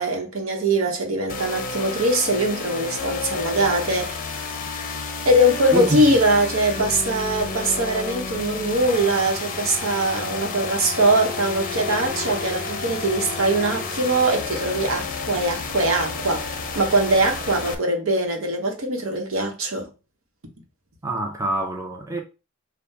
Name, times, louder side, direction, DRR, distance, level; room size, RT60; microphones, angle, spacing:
voice 1, 0.0-4.2 5.2-19.9, right 1 dB, 80° right, 1.0 m, -22 dB
sound 1, 1.3-17.7, left 4 dB, 40° left, 0.6 m, -31 dB
voice 2, 21.0-22.2, right 1 dB, 15° right, 0.6 m, -26 dB
5.5 x 2.3 x 3.3 m
head